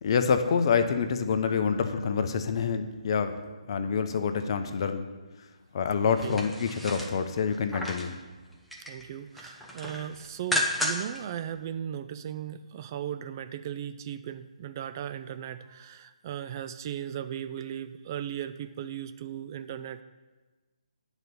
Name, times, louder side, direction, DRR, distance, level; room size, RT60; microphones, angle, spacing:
voice 1, 0.0-3.3 3.7-5.1 5.7-8.1, left 6 dB, 45° left, 8 dB, 0.7 m, -27 dB
sound 1, 1.4-2.9, left 1 dB, 50° right, 2.5 m, -51 dB
sound 2, 6.1-8.1 8.5-9.0 9.3-11.2 11.6-11.7, left 1 dB, ahead, 0.8 m, -33 dB
voice 2, 8.8-20.0, right 10 dB, 30° right, 11 dB, 0.3 m, -37 dB
9.1 x 4.1 x 6.7 m, 1.3 s
figure-of-eight pair, 145°, 4 cm